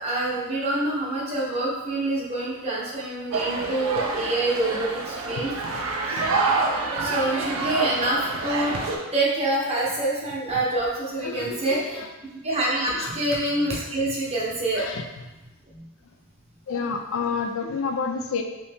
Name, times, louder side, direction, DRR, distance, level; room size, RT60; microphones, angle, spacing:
voice 1, 0.0-5.5 6.1-6.2 7.0-8.8 9.1-12.0 12.4-14.9 15.7-15.8, right 2 dB, 30° right, -5 dB, 0.8 m, -26 dB
sound 1, 3.3-9.0, right 3 dB, 70° right, 0.5 m, -27 dB
voice 2, 11.2-12.1 12.9-13.1 14.8-15.0 16.7-18.4, left 5 dB, 65° left, 4 dB, 0.3 m, -29 dB
2.9 x 2.7 x 3.4 m, 1.1 s
head